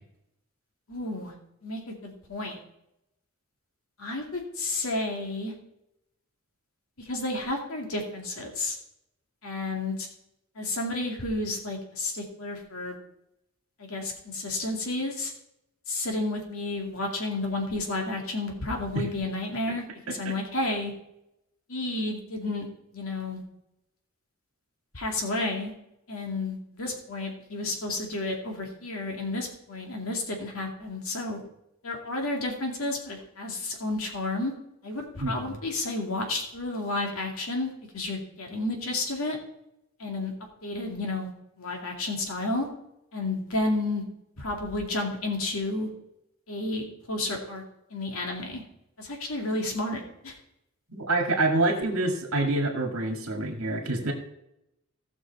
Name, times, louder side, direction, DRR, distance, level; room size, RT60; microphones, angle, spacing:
voice 1, 0.9-1.3 1.6-2.6 4.0-5.5 7.0-8.8 9.4-10.1 10.6-13.0 13.8-15.3 15.9-20.9 21.7-22.7 22.9-23.4 24.9-25.7 26.1-31.4 31.8-34.5 34.8-39.4 40.0-40.3 40.6-41.3 41.6-42.7 43.1-44.0 44.4-45.9 46.5-46.8 47.1-47.6 47.9-48.6 49.0-50.3, left 2 dB, 75° left, 1 dB, 2.4 m, -31 dB
voice 2, 35.2-35.5 50.9-54.1, right 2 dB, 70° right, 3 dB, 1.9 m, -26 dB
16.0 x 6.3 x 4.1 m, 0.83 s
head